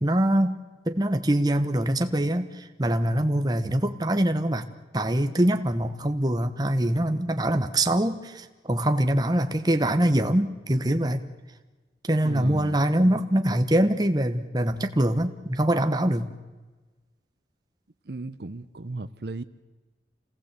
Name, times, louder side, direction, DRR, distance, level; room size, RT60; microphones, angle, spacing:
voice 1, 0.0-0.6 0.9-4.7 4.9-11.2 12.1-16.3, right 1 dB, 20° right, 8 dB, 1.1 m, -24 dB
voice 2, 12.2-13.2 18.1-19.4, right 2 dB, 65° right, 13 dB, 0.7 m, -36 dB
27.0 x 18.5 x 8.2 m, 1.3 s
head